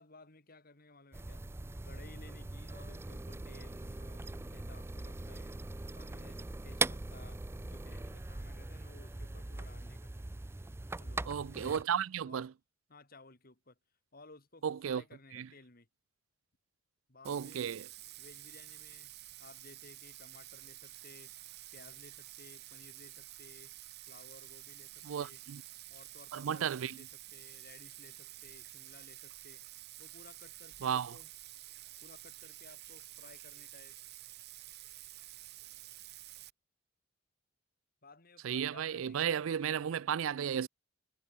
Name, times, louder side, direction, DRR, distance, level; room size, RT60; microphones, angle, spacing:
voice 1, 0.0-1.4 1.8-5.6 5.9-10.1 11.0-11.4 12.2-12.5 12.9-13.8 14.1-15.9 17.1-17.7 18.2-21.4 21.7-23.8 24.1-25.4 25.9-29.6 30.0-31.3 32.0-34.0 38.0-39.9, left 3 dB, 50° left, 2.9 m, -58 dB
sound 1, 1.1-11.8, right 3 dB, 10° right, 0.4 m, -41 dB
voice 2, 11.3-12.5 14.6-15.0 15.3-15.5 17.3-17.9 25.0-25.6 26.3-27.0 30.8-31.1 38.4-40.7, right 8 dB, 85° right, 0.4 m, -34 dB
Bathtub (filling or washing), 17.2-36.5, right 15 dB, 55° right, 1.1 m, -50 dB
head